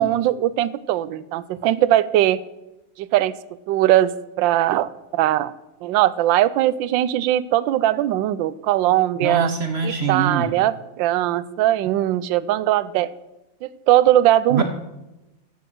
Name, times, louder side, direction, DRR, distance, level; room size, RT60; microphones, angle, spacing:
voice 1, 0.0-2.4 3.0-3.3 3.7-5.5 5.8-9.5 9.8-13.1 13.6-14.6, right 13 dB, 80° right, 17 dB, 1.3 m, -20 dB
voice 2, 9.2-10.5 14.5-14.6, right 4 dB, 40° right, 6 dB, 1.1 m, -23 dB
13.5 x 5.7 x 7.7 m, 0.96 s
omnidirectional pair, 2.0 m